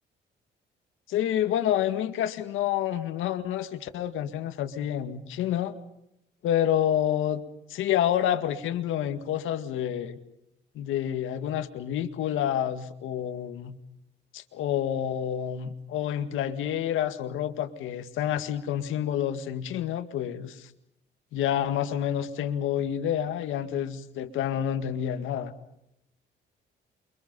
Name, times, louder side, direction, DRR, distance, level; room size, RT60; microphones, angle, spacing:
voice 1, 1.1-5.8 6.4-7.4 7.7-10.2 10.8-13.8 14.3-20.7 21.3-25.5, left 10 dB, 90° left, 9 dB, 2.0 m, -28 dB
29.0 x 25.0 x 5.5 m, 0.80 s
cardioid pair, 90°, 20 cm